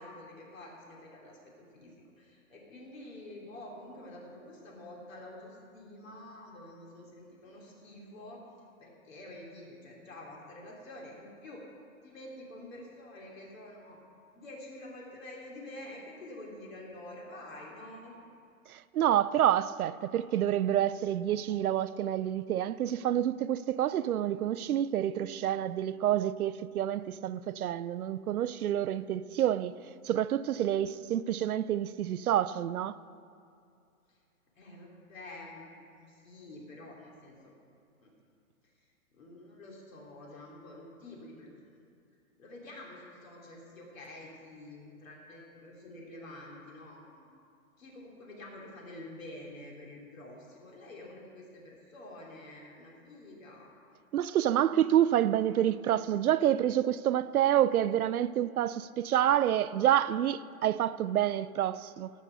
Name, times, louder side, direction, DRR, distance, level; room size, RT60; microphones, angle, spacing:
voice 1, 0.0-8.4 8.8-11.6 12.0-14.0 14.3-18.1 34.1-34.2 34.6-37.5 38.0-38.1 38.6-38.7 39.1-41.5 42.4-47.3 47.8-53.7, left 1 dB, 65° left, 3.1 m, -48 dB
voice 2, 18.7-29.8 30.1-33.0 54.1-62.1, right 11 dB, 85° right, 0.6 m, -28 dB
15.0 x 6.3 x 6.7 m
hypercardioid pair, 145°, 42 cm